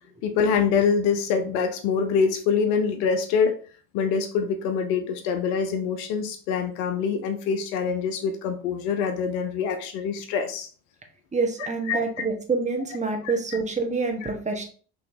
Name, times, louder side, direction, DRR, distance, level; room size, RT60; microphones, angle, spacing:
voice 1, 0.2-3.6 3.9-10.7 11.9-12.0 14.2-14.3, left 6 dB, 70° left, 6 dB, 0.8 m, -25 dB
voice 2, 11.3-14.7, right 4 dB, 15° right, 3 dB, 1.2 m, -27 dB
5.7 x 3.1 x 2.7 m, 0.40 s
hypercardioid pair, 65°, 50 cm